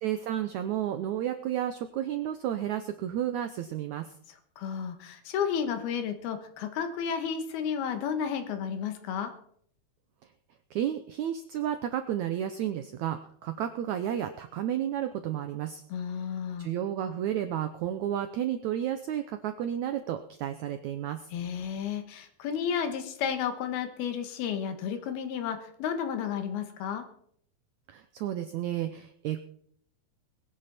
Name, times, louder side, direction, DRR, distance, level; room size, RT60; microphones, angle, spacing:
voice 1, 0.0-4.1 10.7-15.8 16.6-21.3 27.9-29.4, right 11 dB, 80° right, 8 dB, 1.7 m, -32 dB
voice 2, 4.6-9.3 15.9-16.7 21.3-27.1, left 7 dB, 90° left, 7 dB, 3.5 m, -32 dB
21.5 x 10.5 x 4.3 m, 0.64 s
omnidirectional pair, 4.3 m